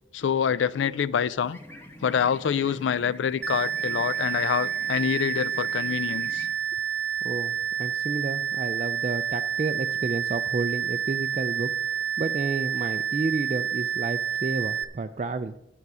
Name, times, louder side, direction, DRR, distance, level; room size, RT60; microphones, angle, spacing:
voice 1, 0.1-1.6 2.0-6.5, left 7 dB, 80° left, 0.4 m, -26 dB
sound 1, 1.4-6.5, left 1 dB, 10° left, 1.0 m, -46 dB
sound 2, 3.4-14.8, right 9 dB, 75° right, 0.6 m, -29 dB
voice 2, 7.2-15.5, right 3 dB, 40° right, 0.3 m, -31 dB
9.5 x 9.3 x 4.8 m
head